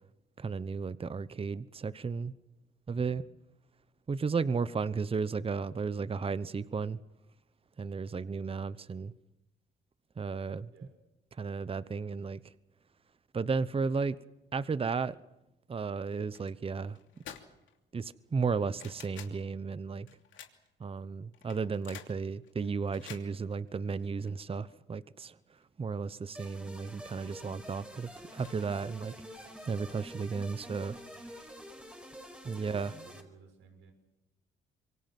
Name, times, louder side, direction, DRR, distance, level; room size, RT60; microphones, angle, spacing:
voice 1, 0.4-2.3 2.9-3.2 4.1-7.0 7.8-9.1 10.2-10.7 11.4-12.4 13.3-14.2 14.5-15.2 15.7-17.0 17.9-20.1 20.8-25.4 25.8-31.0 32.4-32.9, right 5 dB, 30° right, 0.9 m, -34 dB
voice 2, 10.7-11.0 32.5-33.9, right 4 dB, 85° right, 6.3 m, -56 dB
sound 1, 16.3-16.6 16.9-17.8 18.1-19.4 20.1-20.8 21.3-24.7 25.2-25.3 25.6-25.7 26.2-26.6 26.8-26.9 27.2-28.5 28.8-30.0 30.6-31.2, left 9 dB, 75° left, 3.0 m, -52 dB
sound 2, 26.3-33.2, equal, 5° right, 4.9 m, -48 dB
26.5 x 23.5 x 6.0 m
cardioid pair, 90°, 20 cm